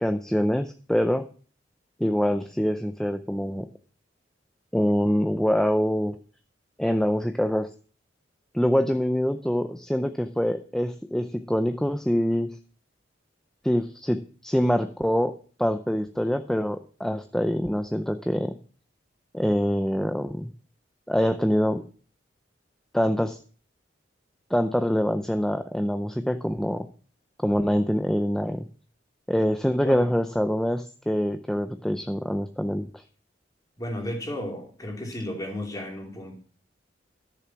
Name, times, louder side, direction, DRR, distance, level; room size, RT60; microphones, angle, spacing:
voice 1, 0.0-1.3 2.0-3.7 4.7-6.2 6.8-7.7 8.5-12.5 13.6-15.3 15.6-18.6 19.3-20.5 21.1-21.8 22.9-23.4 24.5-26.9 27.4-28.7 29.3-33.0, equal, 5° left, 8 dB, 0.5 m, -25 dB
voice 2, 33.8-36.3, left 1 dB, 20° left, 1 dB, 3.0 m, -33 dB
12.5 x 6.9 x 6.0 m, 0.41 s
head